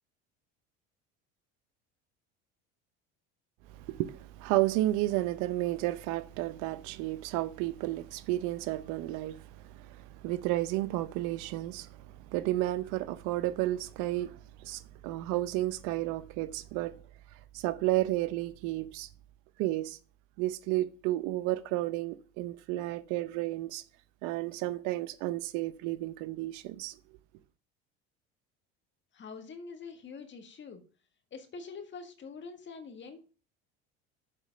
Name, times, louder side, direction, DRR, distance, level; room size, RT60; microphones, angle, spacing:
voice 1, 3.7-17.0 17.5-19.1 19.6-20.0 20.4-23.8 24.2-27.0, right 16 dB, 70° right, 0.7 m, -32 dB
voice 2, 29.1-30.8 31.3-33.3, left 5 dB, 40° left, 1.7 m, -45 dB
7.2 x 5.0 x 6.6 m
supercardioid pair, 85°, 31 cm